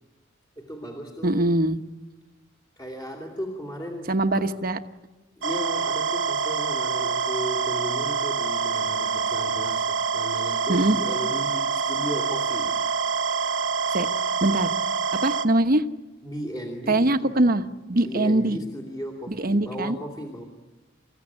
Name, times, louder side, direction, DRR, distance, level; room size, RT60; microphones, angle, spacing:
voice 1, 0.6-1.5 2.8-4.5 5.4-12.7 16.2-17.5 17.9-20.4, equal, 25° left, -1 dB, 2.8 m, -36 dB
voice 2, 1.2-1.8 4.1-4.8 10.7-11.0 13.9-14.1 14.4-14.7 15.2-15.8 16.9-17.6 17.9-18.6 19.3-20.0, right 1 dB, 45° right, 9 dB, 1.1 m, -22 dB
sound 1, 5.4-15.5, right 5 dB, 80° right, 1.3 m, -26 dB
29.0 x 15.5 x 9.9 m, 1.1 s
head